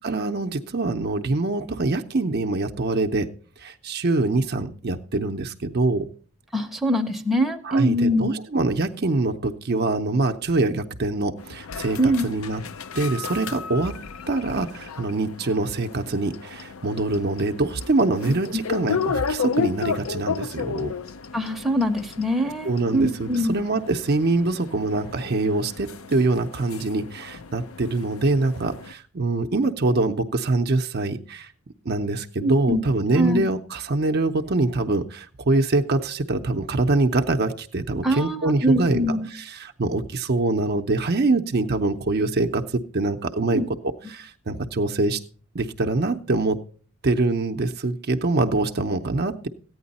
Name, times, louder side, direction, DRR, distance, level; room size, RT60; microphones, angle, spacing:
voice 1, 0.0-3.3 3.6-6.1 7.6-12.6 13.0-14.0 14.3-20.9 22.6-31.5 31.9-39.0 39.3-43.6 44.1-45.2 45.5-46.6 47.0-49.5, right 2 dB, 45° right, 6 dB, 0.6 m, -24 dB
voice 2, 6.5-8.3 12.0-12.3 18.2-18.3 21.3-23.6 32.4-32.8 33.2-33.4 38.0-39.3 43.5-43.7, equal, ahead, 2 dB, 0.7 m, -23 dB
sound 1, 11.4-28.9, left 5 dB, 70° left, 0.6 m, -33 dB
14.5 x 9.5 x 4.1 m, 0.43 s
head